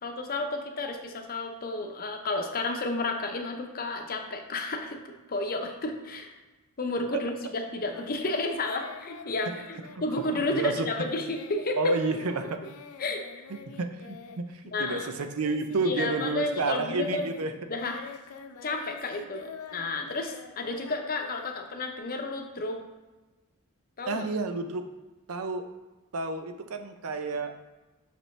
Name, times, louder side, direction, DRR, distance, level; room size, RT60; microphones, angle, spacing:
voice 1, 0.0-6.3 6.8-12.0 13.0-13.4 14.7-15.1 15.8-17.3 17.7-18.1 18.6-22.8 24.0-24.2, left 2 dB, 40° left, 4 dB, 0.7 m, -32 dB
Singing, 7.9-15.9 16.1-22.0, left 5 dB, 70° left, 0.5 m, -47 dB
voice 2, 10.3-10.9 11.8-12.6 13.8-17.5 24.1-24.8 25.3-25.6 26.1-27.6, right 3 dB, 70° right, 7 dB, 0.6 m, -30 dB
5.9 x 5.3 x 3.2 m, 1.1 s
head